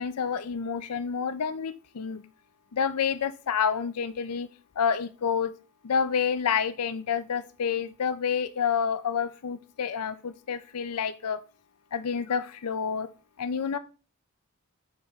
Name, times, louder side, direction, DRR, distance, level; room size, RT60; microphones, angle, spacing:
voice 1, 0.0-2.2 2.7-4.5 4.8-5.5 5.8-11.4 11.9-13.1 13.4-13.8, left 6 dB, 85° left, 13 dB, 0.5 m, -28 dB
7.3 x 5.2 x 3.5 m, 0.36 s
head